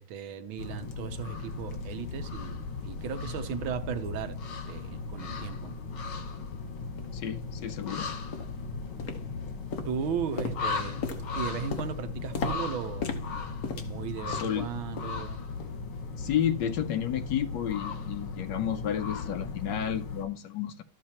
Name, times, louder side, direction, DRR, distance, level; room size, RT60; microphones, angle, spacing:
voice 1, 0.0-4.4 4.7-5.7 9.9-11.0 11.4-13.2 13.8-15.4, right 8 dB, 80° right, 1.6 m, -36 dB
sound 1, 0.6-20.2, left 4 dB, 90° left, 2.2 m, -37 dB
sound 2, 6.3-6.4 7.0-7.1 7.6-7.8 8.3-8.6 9.0-9.4 9.7-14.7 15.0-15.2 15.6-15.8 16.3-16.4, left 4 dB, 50° left, 1.5 m, -37 dB
voice 2, 7.1-8.1 14.3-14.7 16.2-20.8, left 10 dB, 70° left, 1.2 m, -31 dB
13.0 x 7.6 x 2.9 m
omnidirectional pair, 2.2 m